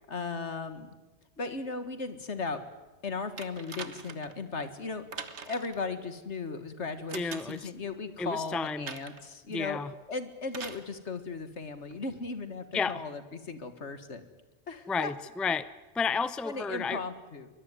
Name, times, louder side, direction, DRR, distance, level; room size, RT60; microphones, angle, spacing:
voice 1, 0.1-0.9 1.4-2.6 3.0-5.0 5.4-9.8 10.1-14.3 14.7-15.1 16.4-17.5, left 4 dB, 75° left, 10 dB, 2.1 m, -36 dB
sound 1, 3.4-4.4 5.1-5.8 7.1-7.7 8.9-9.3 10.5-10.9 11.9-12.0, right 5 dB, 70° right, 1.7 m, -42 dB
voice 2, 7.1-7.7 8.2-8.8 9.5-9.9 12.7-13.0 14.9-15.7 15.9-17.0, left 5 dB, ahead, 15 dB, 0.5 m, -31 dB
23.0 x 21.0 x 9.6 m, 1.1 s
omnidirectional pair, 1.2 m